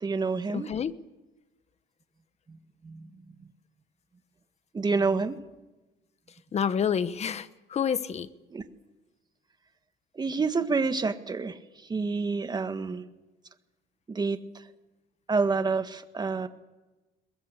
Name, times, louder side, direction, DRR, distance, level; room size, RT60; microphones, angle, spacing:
voice 1, 0.0-0.7 2.5-2.6 2.8-3.2 4.7-5.4 8.5-8.6 10.1-13.0 14.1-14.6 15.3-16.5, right 4 dB, 25° right, 9 dB, 1.7 m, -28 dB
voice 2, 0.5-0.9 6.5-8.3, left 7 dB, 40° left, 14 dB, 1.2 m, -28 dB
22.0 x 21.5 x 8.2 m, 1.1 s
cardioid pair, 110°, 17 cm